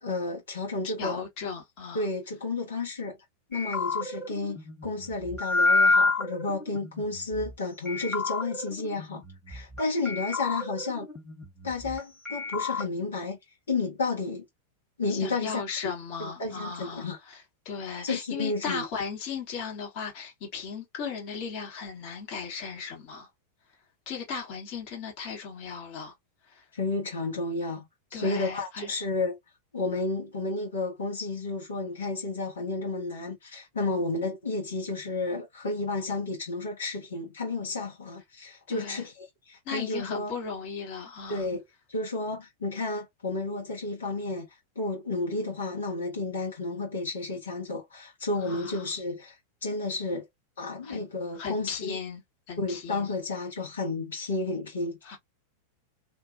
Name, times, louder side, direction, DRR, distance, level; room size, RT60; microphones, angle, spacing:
voice 1, 0.0-1.2 1.9-3.2 3.5-11.1 11.6-13.4 13.7-14.4 15.0-15.6 16.2-17.2 18.0-18.8 26.7-27.9 28.1-29.4 29.7-40.3 41.3-41.6 41.9-44.5 44.7-49.4 49.6-50.2 50.6-52.0 52.6-55.2, left 3 dB, 70° left, 1.1 m, -32 dB
voice 2, 0.8-2.1 15.1-23.3 24.1-26.1 26.5-26.6 28.1-28.9 38.7-39.0 39.6-41.4 48.4-48.9 50.8-51.1 51.4-52.2 52.5-53.1 55.0-55.2, left 5 dB, 45° left, 1.4 m, -36 dB
sound 1, 3.5-7.5 7.9-9.8 10.1-12.0 12.3-12.9, left 3 dB, 10° left, 1.3 m, -28 dB
2.6 x 2.4 x 2.5 m
figure-of-eight pair, 90°, 0 cm